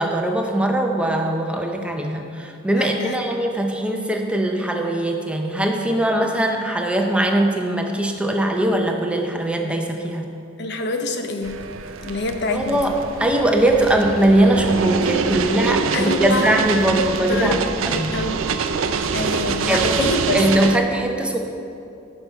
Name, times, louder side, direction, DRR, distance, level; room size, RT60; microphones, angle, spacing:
voice 1, 0.0-10.3 12.5-18.1 19.7-21.4, right 1 dB, 5° right, 2 dB, 0.5 m, -21 dB
voice 2, 2.8-3.2 10.6-11.6 12.0-12.9 15.9-16.5 17.0-17.6 17.9-18.4 19.1-20.7, left 2 dB, 60° left, 5 dB, 0.7 m, -26 dB
sound 1, 11.4-20.8, right 5 dB, 75° right, 0.5 m, -25 dB
11.0 x 5.4 x 4.6 m, 2.6 s
head